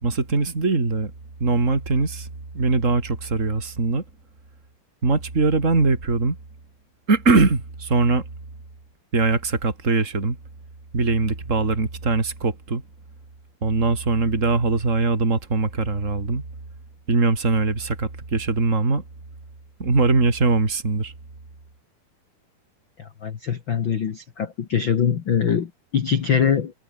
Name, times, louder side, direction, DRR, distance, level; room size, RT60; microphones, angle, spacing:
voice 1, 0.0-1.1 1.4-2.3 2.5-4.0 5.0-6.4 7.1-8.2 9.1-10.4 10.9-12.8 13.6-16.4 17.1-19.0 19.8-21.1, right 3 dB, 20° right, 3.7 m, -21 dB
voice 2, 23.0-26.7, left 7 dB, 65° left, 1.1 m, -23 dB
omnidirectional pair, 4.5 m